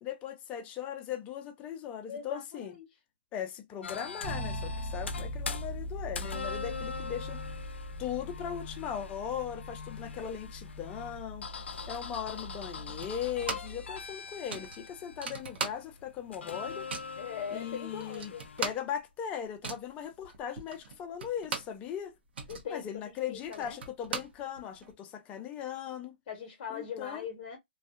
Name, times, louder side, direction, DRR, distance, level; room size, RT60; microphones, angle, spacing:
voice 1, 0.0-2.8 3.3-7.4 8.0-11.5 11.9-16.9 17.5-22.2 22.7-26.1 26.7-27.3, left 9 dB, 20° left, 0.4 m, -38 dB
voice 2, 2.1-2.9 17.2-18.5 22.5-23.8 26.3-27.6, left 7 dB, 45° left, 0.8 m, -41 dB
sound 1, 3.8-18.7, left 6 dB, 85° left, 0.4 m, -43 dB
Bass guitar, 4.2-14.1, equal, 45° right, 0.9 m, -41 dB
sound 2, 13.0-13.8 14.1-14.2 14.5-16.2 16.5-17.2 17.7-17.8 18.0-21.8 22.2-24.9, right 5 dB, 65° right, 0.9 m, -39 dB
2.5 x 2.3 x 2.3 m
hypercardioid pair, 145°, 6 cm